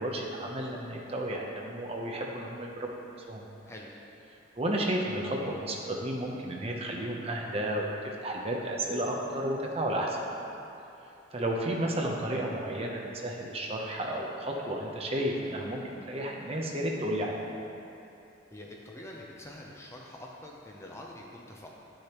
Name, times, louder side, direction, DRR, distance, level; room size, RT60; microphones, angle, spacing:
voice 1, 0.0-2.9 3.3-3.4 4.6-10.2 11.3-17.3, right 1 dB, 30° right, -1 dB, 0.7 m, -32 dB
voice 2, 18.5-21.7, left 1 dB, 15° left, -2 dB, 0.6 m, -45 dB
9.9 x 6.4 x 3.0 m, 2.9 s
head